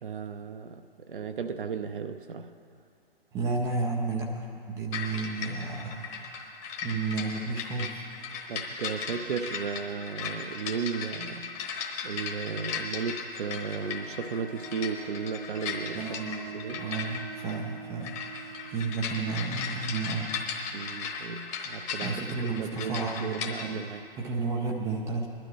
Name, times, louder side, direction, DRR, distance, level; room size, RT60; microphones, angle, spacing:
voice 1, 0.0-2.5 8.5-11.5 12.0-16.8 20.7-22.2 22.6-24.0, right 6 dB, 60° right, 7 dB, 0.7 m, -35 dB
voice 2, 3.3-6.5 6.8-8.0 15.9-18.2 18.7-20.3 22.0-25.3, right 4 dB, 10° right, 0 dB, 0.4 m, -32 dB
sound 1, 4.9-23.7, left 5 dB, 20° left, 1.1 m, -37 dB
sound 2, 13.6-21.0, right 6 dB, 55° left, 1.9 m, -45 dB
20.5 x 12.0 x 3.1 m, 2.5 s
figure-of-eight pair, 120°, 30 cm